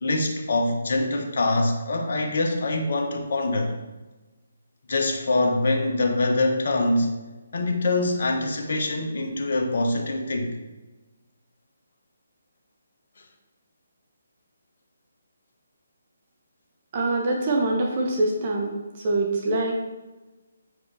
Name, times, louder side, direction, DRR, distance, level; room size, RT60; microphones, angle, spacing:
voice 1, 0.0-3.7 4.9-7.1 7.5-10.6, left 2 dB, 55° left, 3 dB, 1.0 m, -24 dB
voice 2, 16.9-18.7 19.0-19.8, right 2 dB, 35° right, 0 dB, 0.9 m, -24 dB
7.2 x 4.9 x 3.4 m, 1.1 s
figure-of-eight pair, 145°, 0 cm